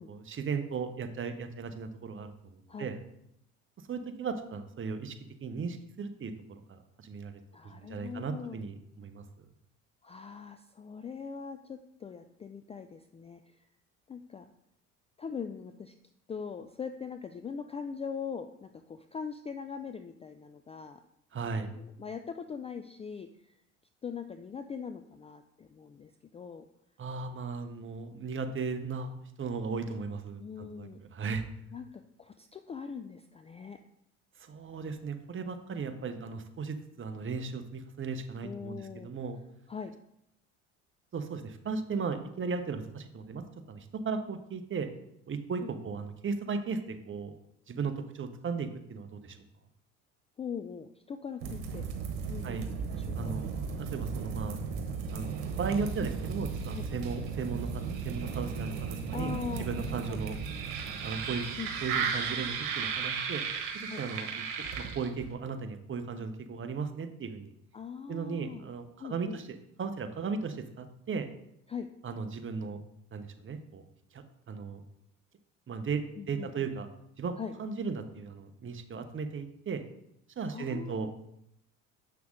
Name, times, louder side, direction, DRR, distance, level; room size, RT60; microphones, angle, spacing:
voice 1, 0.0-3.0 3.9-7.4 7.9-9.2 21.3-21.7 27.0-31.4 34.4-39.4 41.1-44.9 45.3-47.3 47.7-49.4 52.4-52.7 53.2-53.5 53.8-54.6 55.1-60.4 61.0-61.5 61.8-63.4 63.7-64.5 64.8-67.5 68.1-69.5 69.8-71.3 72.0-72.8 73.1-73.8 74.1-74.8 75.7-76.9 77.2-79.8 80.4-81.1, right 5 dB, 30° right, 8 dB, 1.0 m, -36 dB
voice 2, 7.5-8.6 10.0-13.4 14.1-14.5 15.2-15.9 16.3-21.0 21.5-23.3 24.0-26.6 30.4-31.0 31.7-33.8 38.4-39.1 39.7-39.9 45.6-45.7 50.4-51.8 52.3-52.6 53.0-53.3 56.7-56.8 59.1-59.7 60.1-60.2 61.6-61.7 63.9-64.0 67.7-68.6 69.0-69.4 71.7-71.9 76.2-76.7 77.4-77.5 80.5-81.1, left 6 dB, 15° left, 8 dB, 0.3 m, -41 dB
sound 1, 51.4-65.3, right 6 dB, 70° right, 1.4 m, -35 dB
7.5 x 5.8 x 3.8 m, 0.77 s
hypercardioid pair, 65°, 39 cm